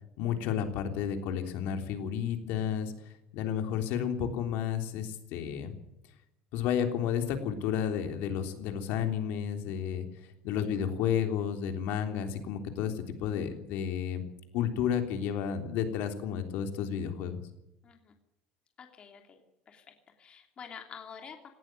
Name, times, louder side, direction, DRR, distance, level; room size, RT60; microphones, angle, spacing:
voice 1, 0.2-2.9 3.3-5.7 6.5-10.1 10.4-14.2 14.5-17.4, left 8 dB, 70° left, 6 dB, 3.5 m, -31 dB
voice 2, 17.8-18.2 18.8-19.4 19.7-21.5, left 6 dB, 30° left, 4 dB, 3.0 m, -48 dB
18.5 x 17.5 x 9.3 m, 0.84 s
cardioid pair, 160°, 4 cm